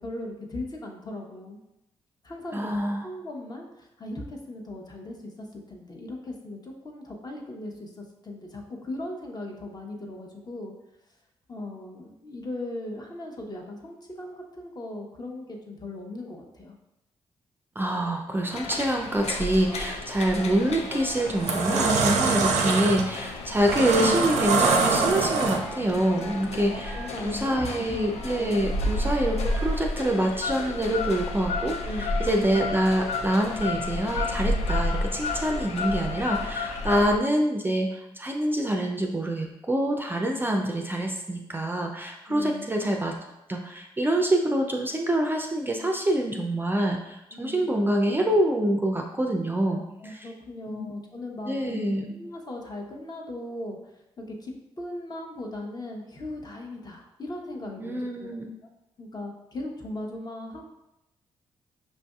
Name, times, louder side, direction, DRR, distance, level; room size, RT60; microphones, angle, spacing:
voice 1, 0.0-1.6 2.2-10.7 11.5-16.8 26.7-28.1 28.4-28.7 31.8-32.2 42.3-42.7 47.3-47.7 49.6-58.4 59.0-60.7, left 1 dB, 35° left, 1 dB, 0.9 m, -38 dB
voice 2, 2.5-3.0 17.8-27.0 27.2-43.2 43.5-50.3 50.7-50.9 51.5-52.1 57.8-58.5, right 1 dB, 20° right, 2 dB, 0.4 m, -26 dB
sound 1, 18.5-37.2, left 2 dB, 65° left, 0.5 m, -32 dB
Telephone, 19.7-19.9 20.3-20.6 21.0-21.2 21.6-21.9 22.3-22.5 22.9-23.2 23.6-23.8 24.2-24.5 24.9-25.1 25.5-25.8 26.2-26.4 26.8-27.1 27.5-27.7 28.2-28.4 28.8-29.0 29.5-29.7, right 1 dB, 5° left, 1.0 m, -44 dB
sound 2, 20.5-20.8 21.2-25.9, right 4 dB, 80° right, 0.4 m, -24 dB
5.2 x 2.5 x 2.3 m, 0.89 s
supercardioid pair, 55°, 12 cm